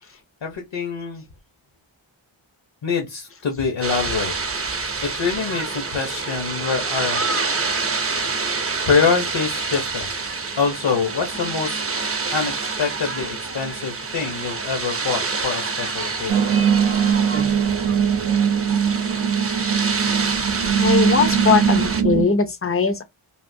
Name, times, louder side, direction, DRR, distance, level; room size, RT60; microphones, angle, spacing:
voice 1, 0.4-1.2 2.8-4.3 5.0-7.2 8.9-10.1 10.6-11.8 12.3-12.5 12.8-16.5, left 5 dB, 60° left, 0.8 m, -24 dB
sound 1, 3.8-22.0, right 4 dB, 30° right, 0.6 m, -27 dB
sound 2, 16.3-22.2, right 7 dB, 90° right, 0.7 m, -20 dB
voice 2, 20.8-23.0, left 5 dB, 30° left, 0.5 m, -20 dB
3.5 x 2.4 x 2.6 m
wide cardioid pair, 65°, 50 cm